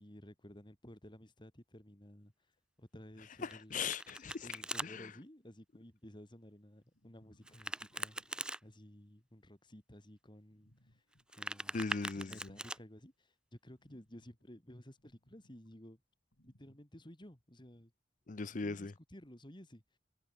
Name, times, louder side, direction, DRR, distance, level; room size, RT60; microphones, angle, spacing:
voice 1, 0.0-2.3 2.8-3.9 4.4-11.0 11.3-11.8 12.2-16.0 16.4-17.9 18.6-20.0, equal, 25° left, 3.2 m, -55 dB
voice 2, 3.4-4.5 4.8-5.1 11.7-12.5 18.3-18.9, left 4 dB, 45° left, 0.6 m, -39 dB
Domestic sounds home sounds, 3.5-4.9 7.4-8.6 11.1-12.8, right 1 dB, 5° right, 1.4 m, -42 dB
sound 1, 6.9-8.8 10.5-13.1 13.8-15.8 16.3-16.8, left 1 dB, 75° left, 4.1 m, -71 dB
head